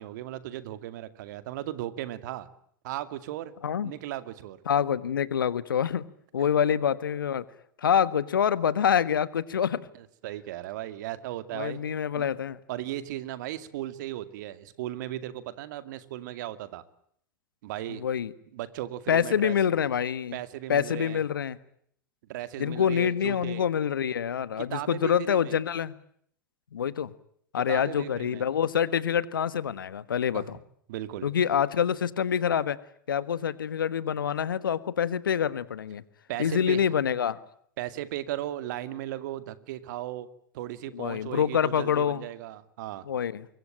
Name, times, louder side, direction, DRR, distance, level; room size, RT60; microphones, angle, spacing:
voice 1, 0.0-2.5 2.8-3.5 3.8-4.6 6.4-6.5 10.0-11.8 12.1-12.3 12.7-16.8 17.6-18.0 18.5-19.5 20.3-21.2 22.3-23.6 24.6-25.6 27.6-28.4 30.3-30.6 30.9-31.3 36.3-36.8 37.8-40.3 40.5-43.0, right 13 dB, 60° right, 13 dB, 2.3 m, -36 dB
voice 2, 3.6-3.9 4.7-6.0 6.3-7.4 7.8-9.9 11.5-12.6 17.9-18.3 19.1-20.4 20.7-21.6 22.6-25.9 26.7-27.1 27.5-30.6 31.2-32.8 33.1-36.0 36.4-37.4 40.9-42.2 43.1-43.5, left 8 dB, 75° left, 17 dB, 1.5 m, -26 dB
25.5 x 23.0 x 9.0 m, 0.67 s
hypercardioid pair, 95°, 11 cm